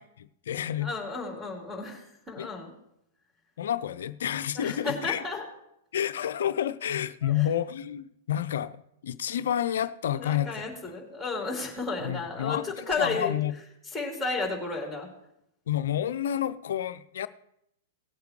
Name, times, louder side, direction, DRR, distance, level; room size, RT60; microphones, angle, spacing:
voice 1, 0.0-0.9 2.4-2.5 3.6-5.2 5.9-10.7 12.0-12.7 13.0-13.5 15.7-17.3, left 10 dB, 70° left, 0.5 m, -29 dB
voice 2, 0.8-2.7 4.5-5.4 7.2-7.5 10.1-13.3 13.9-15.1 16.3-16.5, left 3 dB, ahead, 4.1 m, -33 dB
18.5 x 8.1 x 3.2 m
hypercardioid pair, 110°, 0 cm